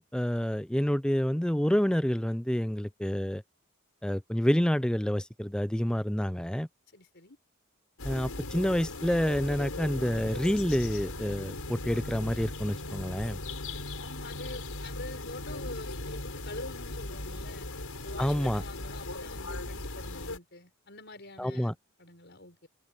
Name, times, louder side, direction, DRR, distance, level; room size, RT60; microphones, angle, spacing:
voice 1, 0.0-3.4 4.0-6.7 8.0-13.4 18.2-18.6 21.4-21.7, equal, 5° left, 0.5 m, -28 dB
voice 2, 6.9-7.4 14.0-17.7 18.0-22.7, left 2 dB, 50° left, 5.7 m, -46 dB
sound 1, 8.0-20.4, left 2 dB, 80° left, 5.5 m, -38 dB
head